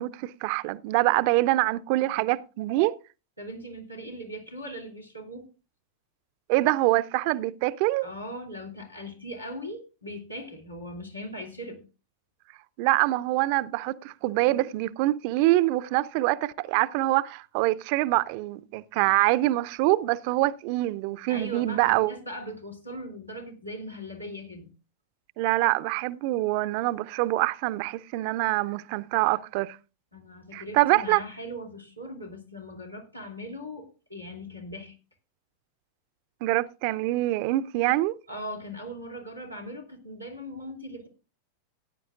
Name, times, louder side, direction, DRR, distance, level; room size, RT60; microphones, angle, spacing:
voice 1, 0.0-3.0 6.5-8.1 12.8-22.2 25.4-29.8 30.5-31.2 36.4-38.2, right 18 dB, 45° right, 0.5 m, -25 dB
voice 2, 3.4-5.5 8.0-11.8 21.3-24.7 30.1-35.0 38.3-41.1, equal, 90° left, 2.7 m, -39 dB
17.5 x 9.8 x 2.4 m
figure-of-eight pair, 90°, 0 cm